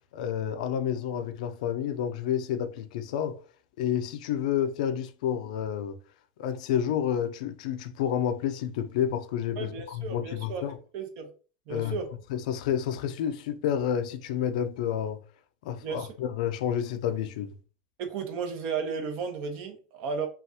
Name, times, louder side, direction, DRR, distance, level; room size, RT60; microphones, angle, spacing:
voice 1, 0.1-3.4 3.8-6.0 6.4-10.8 11.7-12.0 12.3-15.2 15.6-17.6, left 9 dB, 75° left, 0.6 m, -30 dB
voice 2, 9.6-10.6 10.9-11.3 11.7-12.1 15.8-16.1 18.0-20.3, right 5 dB, 55° right, 1.2 m, -34 dB
5.7 x 2.5 x 2.9 m
supercardioid pair, 135°, 4 cm